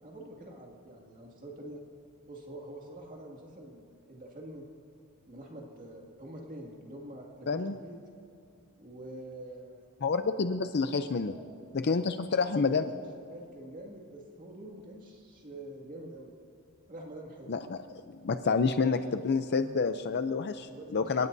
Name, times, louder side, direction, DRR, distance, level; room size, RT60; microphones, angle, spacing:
voice 1, 0.0-1.8 2.3-4.7 5.3-8.0 8.8-9.8 10.8-11.4 11.7-12.1 12.7-16.3 16.9-17.5 20.7-21.3, right 1 dB, 40° right, -1 dB, 2.2 m, -46 dB
voice 2, 7.5-7.8 10.0-11.3 11.7-12.8 17.5-21.3, left 4 dB, 50° left, 9 dB, 0.5 m, -29 dB
30.0 x 18.0 x 2.7 m, 2.5 s
head